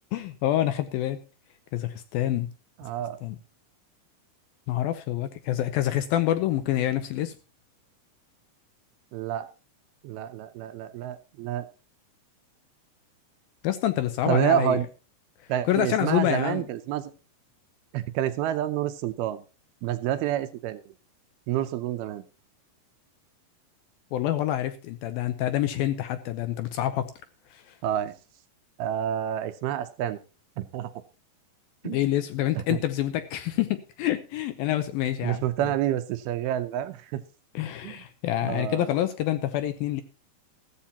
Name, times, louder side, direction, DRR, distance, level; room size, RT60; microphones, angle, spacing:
voice 1, 0.1-1.2 1.7-2.5 3.2-3.4 4.7-7.4 13.6-14.8 15.6-16.7 24.1-27.1 27.5-27.8 31.8-35.4 37.5-40.0, left 13 dB, 75° left, 10 dB, 2.3 m, -27 dB
voice 2, 2.8-3.2 9.1-9.5 10.0-11.7 14.3-14.9 15.5-17.1 17.9-19.4 19.8-20.9 21.5-22.2 27.8-28.1 28.8-30.2 30.6-30.9 31.8-32.0 32.7-32.8 35.2-37.2 37.8-38.0 38.4-39.0, right 11 dB, 80° right, 10 dB, 2.4 m, -28 dB
14.5 x 14.5 x 2.9 m, 0.32 s
omnidirectional pair, 4.8 m